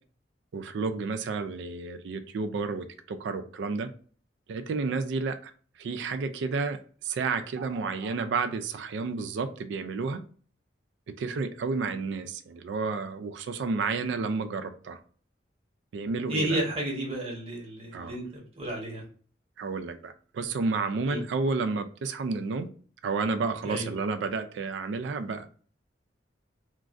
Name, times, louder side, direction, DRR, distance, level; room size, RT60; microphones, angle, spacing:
voice 1, 0.5-3.9 4.5-5.5 5.8-10.2 11.1-15.0 15.9-16.6 17.9-18.2 19.6-22.7 23.0-25.5, right 4 dB, 70° right, 0.3 m, -31 dB
voice 2, 16.2-19.0 21.0-21.2 23.6-23.9, right 1 dB, 35° right, 1.0 m, -32 dB
3.1 x 2.3 x 2.4 m
head